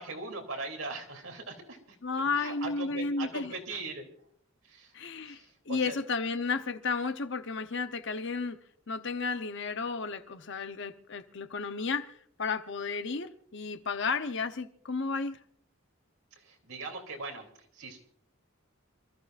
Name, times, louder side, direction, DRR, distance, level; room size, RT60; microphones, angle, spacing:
voice 1, 0.0-2.0 2.3-4.1 4.6-4.9 5.2-6.0 16.4-17.5 17.7-18.0, right 3 dB, 85° right, 3.2 m, -40 dB
voice 2, 2.0-3.5 4.9-8.6 8.9-12.1 12.4-15.4, left 4 dB, 60° left, 0.9 m, -33 dB
27.5 x 14.0 x 2.6 m
head